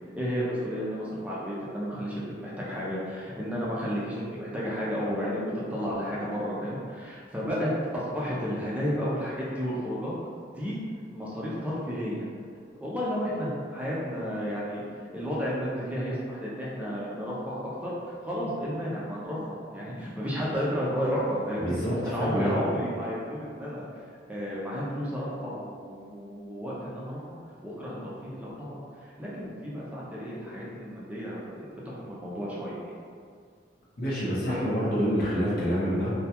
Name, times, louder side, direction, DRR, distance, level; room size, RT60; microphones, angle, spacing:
voice 1, 0.1-10.1 10.5-10.8 11.1-12.2 12.8-14.8 15.1-17.9 18.2-21.8 22.1-23.8 24.3-27.2 27.6-28.8 29.2-32.9 34.4-34.6, equal, 10° right, -7 dB, 0.4 m, -32 dB
voice 2, 21.6-22.5 34.0-36.1, equal, 55° left, -7 dB, 0.7 m, -27 dB
2.2 x 2.2 x 2.7 m, 2.1 s
head